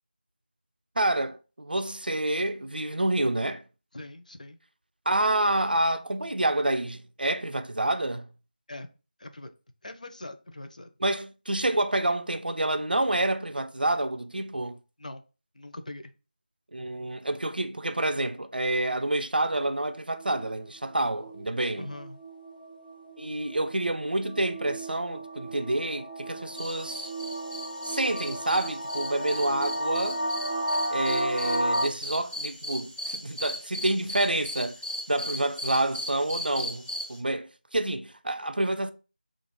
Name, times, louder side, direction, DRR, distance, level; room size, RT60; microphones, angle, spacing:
voice 1, 1.0-3.6 5.1-8.3 11.0-14.8 16.7-21.9 23.2-27.1 27.8-30.2 30.9-34.8 35.1-38.9, right 1 dB, 70° right, 0.4 m, -28 dB
voice 2, 3.9-4.6 8.7-8.9 9.2-9.5 9.8-10.9 15.0-15.2 15.5-16.1 21.7-22.2, left 2 dB, 50° left, 0.5 m, -42 dB
sound 1, 19.9-31.9, right 1 dB, 80° left, 1.0 m, -34 dB
sound 2, 26.5-37.2, left 1 dB, 10° left, 1.0 m, -38 dB
2.9 x 2.5 x 3.6 m
figure-of-eight pair, 165°, 5 cm